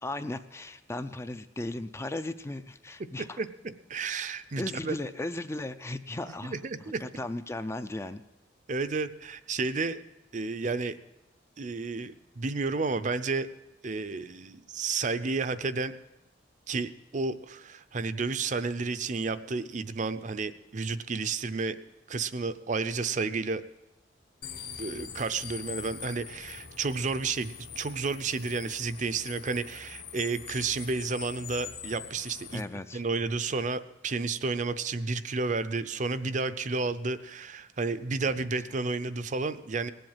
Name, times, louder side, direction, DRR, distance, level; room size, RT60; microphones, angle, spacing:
voice 1, 0.0-3.4 4.6-6.5 7.0-8.2 32.5-33.0 38.4-38.5, left 2 dB, 15° left, 11 dB, 0.4 m, -36 dB
voice 2, 3.4-5.0 6.4-7.0 8.7-10.0 10.3-11.0 11.6-13.5 13.8-15.9 16.7-21.8 22.1-23.6 24.8-32.6 32.9-39.9, right 4 dB, 40° right, 12 dB, 0.6 m, -31 dB
sound 1, 24.4-32.6, left 7 dB, 60° left, 1.1 m, -43 dB
19.0 x 7.8 x 7.3 m, 0.99 s
head